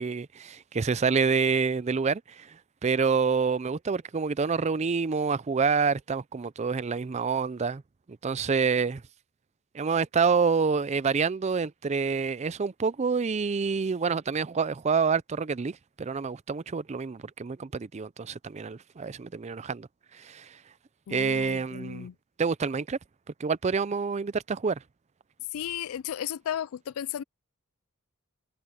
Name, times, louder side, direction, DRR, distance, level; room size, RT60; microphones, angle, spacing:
voice 1, 0.0-2.5 2.8-7.8 8.2-9.0 9.7-19.9 20.2-20.5 21.1-22.1 22.4-23.0 23.4-24.8, right 5 dB, 30° right, 0.4 m, -27 dB
voice 2, 21.1-22.1 25.5-27.2, left 10 dB, 70° left, 0.3 m, -34 dB
head